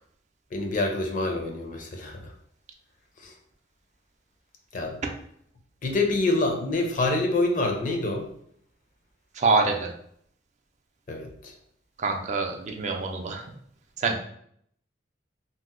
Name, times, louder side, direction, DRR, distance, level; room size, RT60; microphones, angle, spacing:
voice 1, 0.5-2.3 3.2-3.3 4.7-5.0 5.8-8.3 11.1-11.5, left 2 dB, 45° left, 3 dB, 0.5 m, -26 dB
voice 2, 9.4-9.9 12.0-13.5 14.0-14.2, right 4 dB, 40° right, 3 dB, 0.4 m, -25 dB
2.7 x 2.0 x 3.6 m, 0.67 s
head